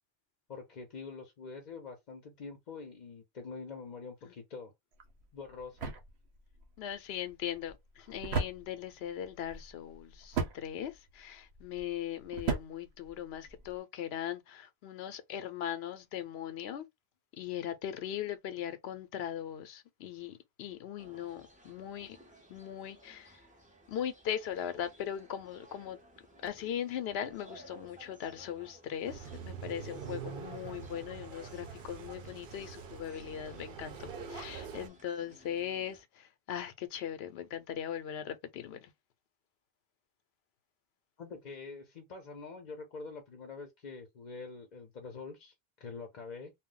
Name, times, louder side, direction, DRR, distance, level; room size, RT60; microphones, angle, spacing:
voice 1, 0.5-4.7 5.3-5.9 41.2-46.5, left 4 dB, 50° left, 0.7 m, -45 dB
sound 1, 4.9-13.8, right 4 dB, 90° right, 1.0 m, -39 dB
voice 2, 6.8-16.9 17.4-22.2 22.5-23.4 23.9-26.0 26.4-38.9, left 10 dB, 80° left, 0.8 m, -39 dB
sound 2, 21.0-36.0, equal, 10° right, 0.5 m, -56 dB
sound 3, 29.1-34.9, right 7 dB, 65° right, 0.7 m, -45 dB
2.3 x 2.1 x 3.7 m
omnidirectional pair, 1.0 m